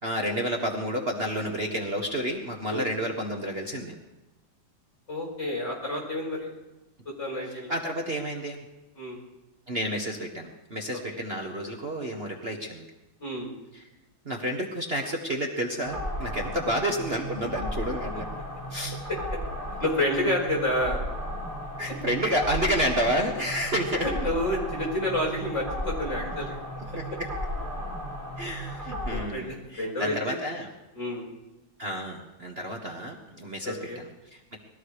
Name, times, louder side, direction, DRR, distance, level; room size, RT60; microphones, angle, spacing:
voice 1, 0.0-3.9 7.7-8.6 9.7-12.8 13.7-13.8 14.2-18.3 18.7-19.0 21.8-24.1 26.9-27.3 28.4-30.7 31.8-34.6, equal, 35° right, 1 dB, 1.4 m, -30 dB
voice 2, 5.1-6.5 7.1-7.7 9.0-9.2 10.9-11.2 13.2-13.5 19.8-21.0 24.0-26.6 29.1-30.4 31.0-31.2 33.6-34.0, left 1 dB, 35° left, -2 dB, 5.4 m, -29 dB
sound 1, 15.8-29.2, equal, 15° right, 6.8 m, -34 dB
21.0 x 14.0 x 4.9 m, 1.0 s
omnidirectional pair, 2.2 m